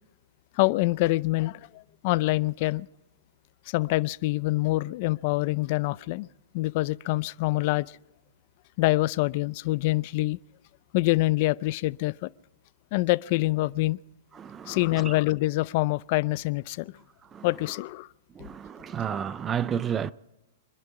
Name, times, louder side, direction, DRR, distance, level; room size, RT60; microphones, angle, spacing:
voice 1, 0.6-2.9 3.7-6.3 6.5-7.9 8.8-10.4 10.9-12.3 12.9-14.0 14.7-16.9 17.4-18.1, left 20 dB, 50° left, 0.4 m, -25 dB
voice 2, 14.3-14.8 15.0-15.1 17.3-17.5 18.4-20.1, right 8 dB, 20° right, 0.4 m, -31 dB
26.0 x 11.0 x 4.7 m
hypercardioid pair, 130°, 0 cm